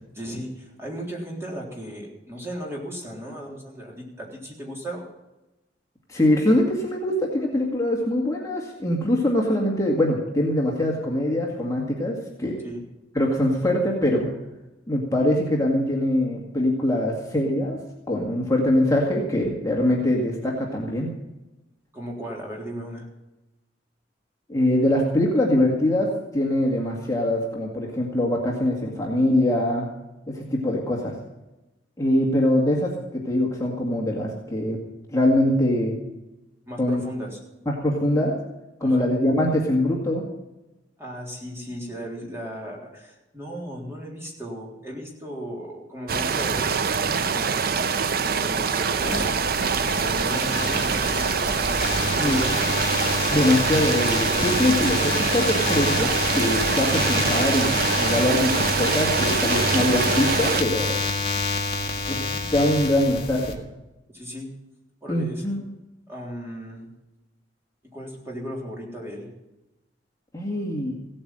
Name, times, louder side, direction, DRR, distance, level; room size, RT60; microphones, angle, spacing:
voice 1, 0.1-5.0 12.6-12.8 21.9-23.1 36.7-37.4 38.8-39.1 41.0-46.8 47.3-49.4 50.0-51.5 52.0-52.7 64.1-64.5 65.0-65.4 66.1-66.9 67.9-69.3, equal, 15° right, -2 dB, 3.6 m, -36 dB
voice 2, 6.1-12.6 13.2-14.3 14.9-17.8 18.1-21.1 24.5-29.9 30.3-31.2 32.0-34.8 35.1-36.0 36.8-37.0 37.7-38.4 38.8-40.3 52.2-52.4 53.3-61.0 62.1-62.2 62.5-63.6 65.1-65.6 70.3-70.9, left 1 dB, 20° left, -2 dB, 2.1 m, -23 dB
sound 1, 46.1-60.6, right 5 dB, 55° right, 0.6 m, -24 dB
sound 2, 49.0-63.5, left 3 dB, 35° left, 1.9 m, -28 dB
16.5 x 8.8 x 7.6 m, 0.99 s
head